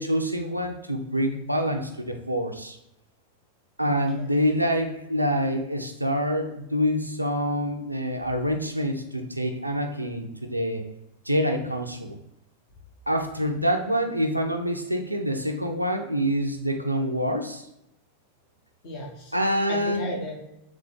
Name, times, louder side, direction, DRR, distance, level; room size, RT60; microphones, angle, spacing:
voice 1, 0.0-2.8 3.8-10.8 11.3-12.2 13.1-17.7 19.3-20.1, equal, 85° right, 4 dB, 0.4 m, -26 dB
voice 2, 3.8-4.4 18.8-19.3 19.7-20.3, equal, 45° left, -2 dB, 1.2 m, -35 dB
3.9 x 3.3 x 3.5 m, 0.84 s
figure-of-eight pair, 90°, 0 cm